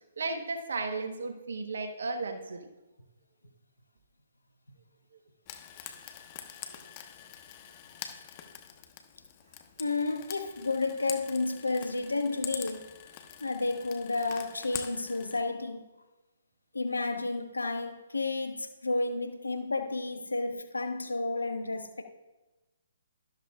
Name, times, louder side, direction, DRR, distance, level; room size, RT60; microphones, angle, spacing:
voice 1, 0.2-2.7, right 3 dB, 70° right, 1.2 m, -34 dB
Frying (food), 5.5-15.4, left 10 dB, 35° left, 1.2 m, -44 dB
voice 2, 9.8-12.9 13.4-15.8 16.7-22.0, left 3 dB, 85° left, 1.2 m, -31 dB
13.0 x 12.5 x 2.4 m
figure-of-eight pair, 135°, 0 cm